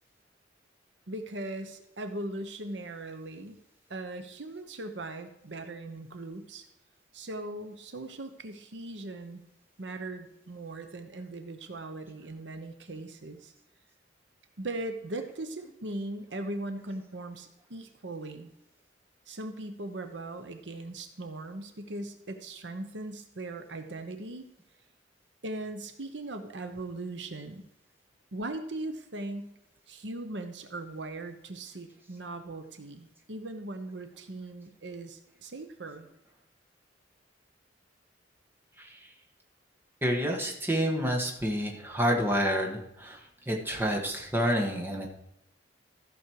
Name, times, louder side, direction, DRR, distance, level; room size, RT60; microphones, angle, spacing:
voice 1, 1.1-3.6 3.9-6.7 7.1-9.4 9.8-13.5 14.6-18.5 19.3-24.5 25.4-27.7 28.3-29.5 29.9-36.1, right 2 dB, 75° right, 7 dB, 1.0 m, -39 dB
voice 2, 38.8-39.1 40.0-43.2 43.4-45.1, equal, 10° right, 0 dB, 1.7 m, -28 dB
14.5 x 6.4 x 4.7 m, 0.84 s
head